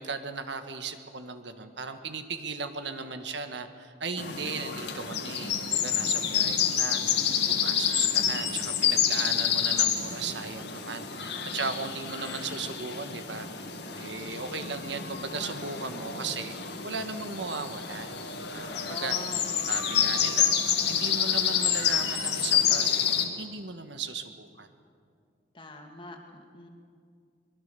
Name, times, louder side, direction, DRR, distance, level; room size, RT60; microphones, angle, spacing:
voice 1, 0.0-18.2 18.5-19.1 19.7-24.7, right 4 dB, 70° right, 8 dB, 1.5 m, -37 dB
sound 1, 4.2-23.2, left 8 dB, 60° left, 2.1 m, -28 dB
voice 2, 18.5-19.5 25.5-26.7, left 1 dB, 25° left, 3 dB, 2.2 m, -43 dB
24.0 x 22.0 x 6.9 m, 2.2 s
head